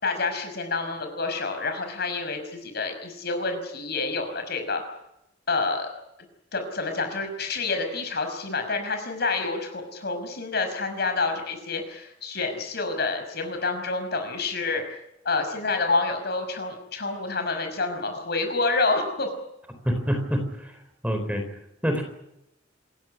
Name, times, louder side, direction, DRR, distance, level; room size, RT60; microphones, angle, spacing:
voice 1, 0.0-4.8 5.5-5.9 6.5-15.0 15.2-19.3, left 3 dB, 55° left, 7 dB, 5.8 m, -28 dB
voice 2, 19.8-20.7 21.0-21.4 21.8-22.0, equal, 5° right, 6 dB, 4.2 m, -26 dB
27.5 x 16.0 x 9.8 m, 0.85 s
head